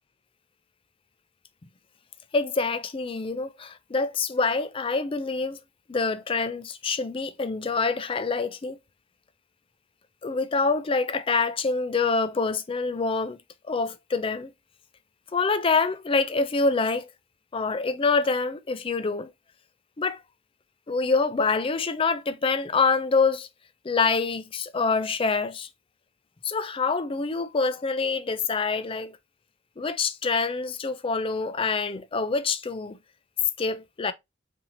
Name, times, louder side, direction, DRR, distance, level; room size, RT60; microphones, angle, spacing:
voice 1, 2.3-5.6 5.9-8.8 10.2-13.4 13.7-14.5 15.3-17.1 17.5-19.3 20.0-20.2 20.9-23.5 23.8-25.7 26.4-29.1 29.8-33.0 33.6-34.1, left 4 dB, 30° left, 0.4 m, -26 dB
5.6 x 2.8 x 2.7 m
head